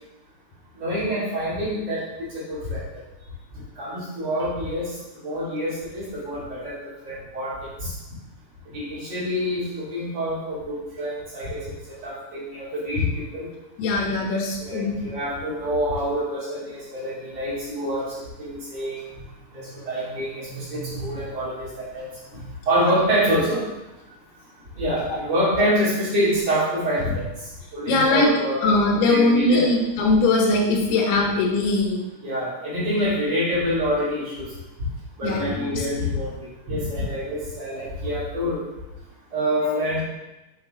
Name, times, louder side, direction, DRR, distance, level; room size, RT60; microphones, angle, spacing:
voice 1, 0.8-2.8 3.8-4.9 5.2-7.9 8.7-13.5 14.6-18.1 18.4-19.0 19.5-22.1 22.7-23.6 24.8-27.3 27.7-28.6 29.1-29.7 32.2-34.5 35.2-36.4 36.7-38.6 39.3-40.0, equal, 45° right, -9 dB, 3.9 m, -26 dB
voice 2, 13.8-15.0 19.2-19.3 19.6-19.7 20.5-21.2 22.3-22.5 25.1-25.2 27.9-28.3 28.6-32.1 35.2-35.9 39.6-39.8, left 2 dB, 80° left, 0 dB, 3.2 m, -22 dB
8.1 x 6.3 x 3.9 m, 1.0 s
omnidirectional pair, 4.5 m